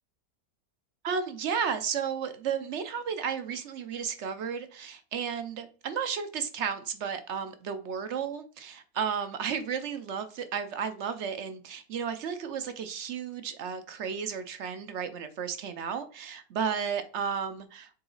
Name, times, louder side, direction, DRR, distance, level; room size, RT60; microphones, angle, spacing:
voice 1, 1.0-17.9, right 7 dB, 60° right, 10 dB, 0.9 m, -33 dB
6.9 x 3.9 x 3.9 m, 0.38 s
omnidirectional pair, 1.6 m